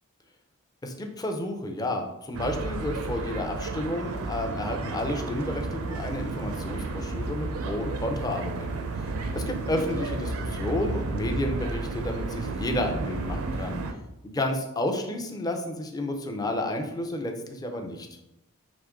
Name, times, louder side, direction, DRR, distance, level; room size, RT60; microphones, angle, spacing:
voice 1, 0.8-13.8 14.2-18.1, left 1 dB, 15° left, 3 dB, 0.5 m, -31 dB
sound 1, 2.3-13.9, right 3 dB, 65° right, 0.5 m, -32 dB
5.0 x 2.9 x 3.6 m, 0.89 s
head